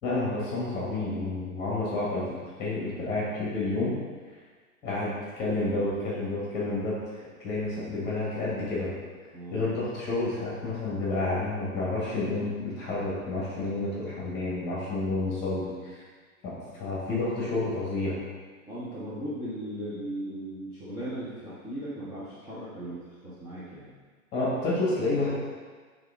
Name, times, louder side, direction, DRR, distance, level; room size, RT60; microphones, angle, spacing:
voice 1, 0.0-2.2 2.6-3.9 4.8-6.9 7.4-8.9 9.5-16.0 16.4-18.2 24.3-25.3, left 2 dB, 25° left, -7 dB, 2.0 m, -30 dB
voice 2, 9.3-9.7 18.7-23.9, right 1 dB, 10° right, -10 dB, 0.9 m, -37 dB
8.8 x 3.7 x 3.8 m, 1.5 s
hypercardioid pair, 145°, 42 cm